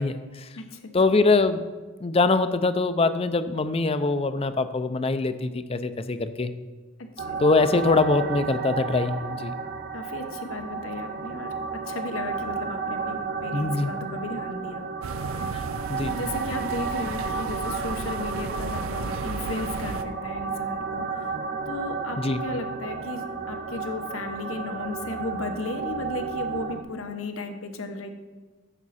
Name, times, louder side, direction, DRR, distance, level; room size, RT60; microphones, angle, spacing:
voice 1, 0.0-0.5 0.9-1.6 2.0-6.5 7.4-9.5 13.5-13.9 15.5-15.6 15.9-16.1 22.2-22.4, left 3 dB, 30° left, 12 dB, 0.5 m, -23 dB
voice 2, 0.6-0.9 7.0-7.4 9.9-14.8 15.2-15.6 16.0-21.3 21.7-28.1, left 2 dB, 80° left, 6 dB, 1.0 m, -35 dB
sound 1, 7.2-26.8, right 5 dB, 45° right, 0.7 m, -32 dB
sound 2, 15.0-20.0, right 4 dB, 85° right, 0.5 m, -34 dB
11.0 x 7.6 x 4.2 m, 1.3 s
head